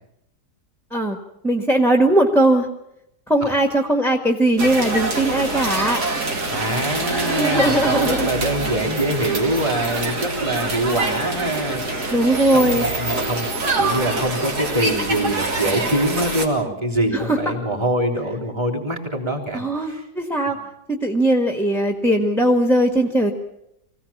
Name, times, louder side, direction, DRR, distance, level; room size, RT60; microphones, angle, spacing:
voice 1, 1.4-2.7 3.3-6.0 7.1-8.3 12.1-12.9 17.1-17.5 19.5-20.6 20.9-23.3, right 1 dB, ahead, 4 dB, 1.3 m, -19 dB
sound 1, 4.6-16.5, right 2 dB, 65° right, 3.0 m, -25 dB
voice 2, 6.5-12.2 12.5-13.5 13.8-20.1 20.5-20.6, right 1 dB, 15° right, 3 dB, 3.6 m, -24 dB
24.0 x 17.0 x 7.3 m, 0.82 s
omnidirectional pair, 1.9 m